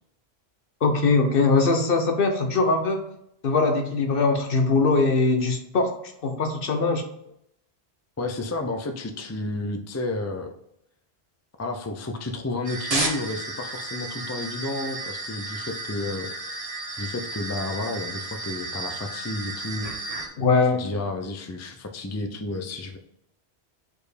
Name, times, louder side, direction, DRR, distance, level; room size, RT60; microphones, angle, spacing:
voice 1, 0.8-3.1 3.4-5.9 6.2-7.0 20.4-20.9, left 3 dB, 60° left, 5 dB, 1.1 m, -21 dB
voice 2, 8.2-10.5 11.6-16.6 17.0-19.9 20.7-23.0, left 2 dB, 20° left, 5 dB, 0.5 m, -31 dB
sound 1, 12.6-20.3, right 2 dB, 35° right, 1.1 m, -33 dB
4.9 x 4.4 x 5.0 m, 0.74 s
omnidirectional pair, 1.1 m